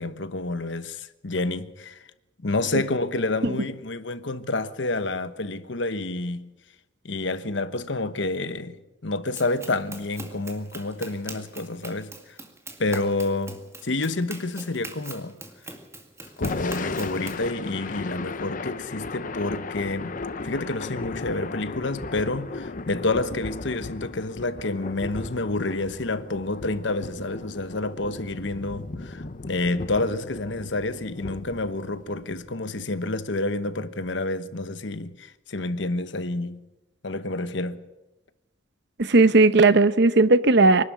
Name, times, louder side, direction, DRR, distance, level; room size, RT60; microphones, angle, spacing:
voice 1, 0.0-2.0 2.4-6.5 7.0-8.8 9.0-12.1 12.8-15.3 16.4-20.2 20.4-36.6 37.0-37.8, left 2 dB, 65° left, 1.1 m, -29 dB
Run, 9.4-17.5, right 2 dB, 15° right, 2.1 m, -42 dB
Thunder / Rain, 16.3-32.5, left 3 dB, 45° left, 0.8 m, -36 dB
voice 2, 39.0-40.8, right 3 dB, 60° right, 0.8 m, -16 dB
24.0 x 12.0 x 9.4 m
head